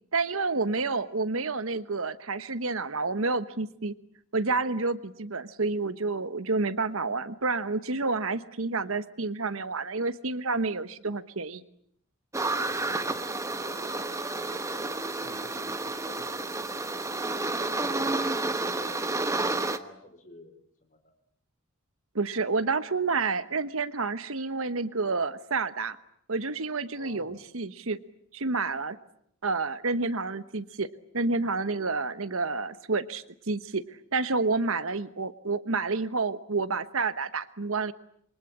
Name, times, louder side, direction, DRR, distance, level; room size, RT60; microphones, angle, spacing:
voice 1, 0.1-3.9 4.3-11.6 22.1-26.0 26.3-28.0 28.3-29.0 29.4-30.9 31.1-33.8 34.1-37.9, right 3 dB, 70° right, 13 dB, 1.2 m, -29 dB
sound 1, 12.3-19.8, right 2 dB, 15° right, 1.1 m, -30 dB
voice 2, 12.6-19.0 19.4-21.0 26.9-27.4, left 1 dB, 35° left, 7 dB, 4.5 m, -50 dB
27.5 x 24.0 x 8.7 m, 0.70 s
head